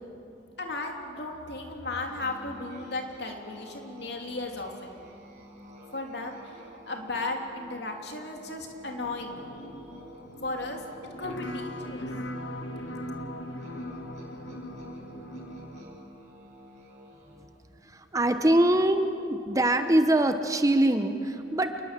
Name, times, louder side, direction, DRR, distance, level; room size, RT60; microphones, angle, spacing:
voice 1, 0.6-5.0 5.9-6.5 6.9-9.4 10.4-10.8 11.2-12.1, left 2 dB, 60° left, 2 dB, 3.1 m, -35 dB
Musical instrument, 2.0-17.6, equal, 40° right, 6.7 m, -51 dB
sound 1, 9.0-15.8, equal, 85° left, 1.7 m, -39 dB
voice 2, 17.8-21.8, right 1 dB, 20° right, 8 dB, 0.9 m, -23 dB
27.5 x 20.5 x 7.6 m, 2.7 s
head